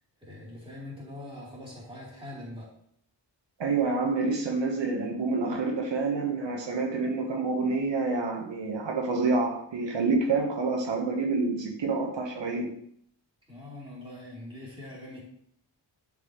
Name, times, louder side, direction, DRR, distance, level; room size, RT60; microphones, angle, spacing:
voice 1, 0.2-2.7 13.5-15.2, left 1 dB, 10° right, -6 dB, 3.4 m, -43 dB
voice 2, 3.6-12.7, right 3 dB, 75° right, 1 dB, 1.4 m, -28 dB
11.0 x 5.7 x 3.2 m, 0.66 s
wide cardioid pair, 175°, 44 cm